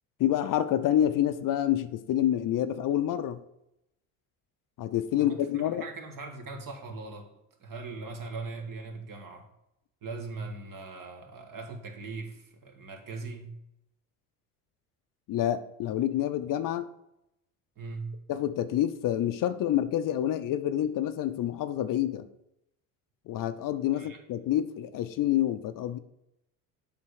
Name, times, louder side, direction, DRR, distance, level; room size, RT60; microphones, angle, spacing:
voice 1, 0.2-3.4 4.8-5.8 15.3-16.9 18.3-22.3 23.3-26.0, left 11 dB, 50° left, 11 dB, 0.6 m, -27 dB
voice 2, 5.1-7.3 7.6-9.5 10.0-13.6 17.8-18.2 23.9-24.2, right 3 dB, 50° right, 3 dB, 1.8 m, -40 dB
7.5 x 3.6 x 6.4 m, 0.84 s
supercardioid pair, 85°, 41 cm